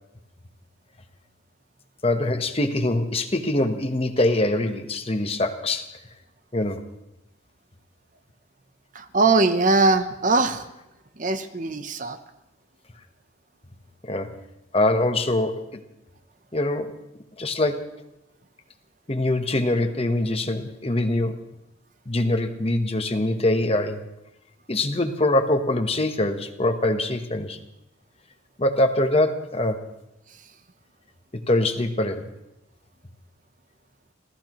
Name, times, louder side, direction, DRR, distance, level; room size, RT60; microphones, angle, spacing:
voice 1, 2.0-5.9 6.5-6.8 14.0-14.3 14.7-15.7 16.5-16.9 17.4-17.9 19.1-21.4 22.1-24.0 24.7-27.6 28.6-29.8 31.5-32.3, left 1 dB, 30° left, 7 dB, 1.2 m, -23 dB
voice 2, 8.9-10.6 11.2-12.2, right 3 dB, 40° right, 9 dB, 0.9 m, -21 dB
30.0 x 14.5 x 3.1 m, 0.92 s
head